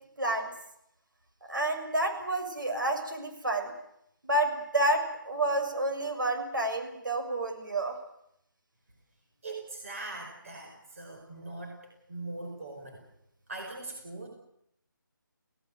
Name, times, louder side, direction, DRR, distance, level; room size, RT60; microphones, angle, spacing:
voice 1, 0.2-0.5 1.5-3.7 4.2-8.0, right 1 dB, 65° right, 4 dB, 6.7 m, -29 dB
voice 2, 9.4-13.0 13.5-14.3, right 2 dB, 40° right, 1 dB, 5.1 m, -41 dB
28.5 x 17.5 x 8.0 m, 0.78 s
figure-of-eight pair, 175°, 11 cm